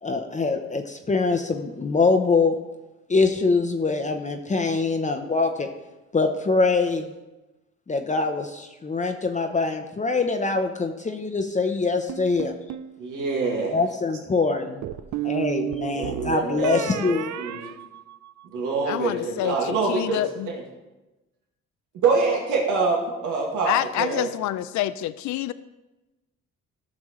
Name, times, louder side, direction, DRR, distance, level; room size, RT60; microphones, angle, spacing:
voice 1, 0.0-2.5 3.1-5.7 6.1-7.1 7.9-12.6 13.7-14.8 15.2-17.3, left 3 dB, 25° left, 5 dB, 0.7 m, -24 dB
sound 1, 12.1-12.9 14.8-18.6, right 13 dB, 65° right, 0.5 m, -32 dB
voice 2, 13.0-13.8 15.9-17.6 18.4-20.2 20.5-20.6 21.9-24.3, right 4 dB, 90° right, -1 dB, 2.1 m, -25 dB
voice 3, 18.8-20.5 23.7-25.5, left 13 dB, 70° left, 14 dB, 0.4 m, -27 dB
14.5 x 6.2 x 3.1 m, 1.1 s
cardioid pair, 90°, 30 cm